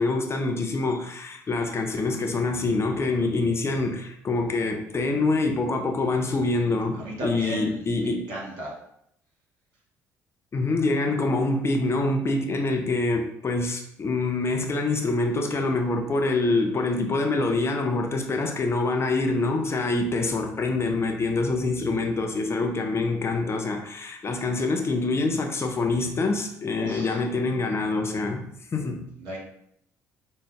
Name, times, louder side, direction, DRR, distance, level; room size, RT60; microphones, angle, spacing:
voice 1, 0.0-8.3 10.5-29.1, left 3 dB, 30° left, 3 dB, 0.6 m, -25 dB
voice 2, 6.3-7.9 8.3-8.7 15.5-15.7 26.8-27.2 29.2-29.4, right 1 dB, 55° right, -3 dB, 1.5 m, -35 dB
5.1 x 2.2 x 3.3 m, 0.70 s
figure-of-eight pair, 50°, 9 cm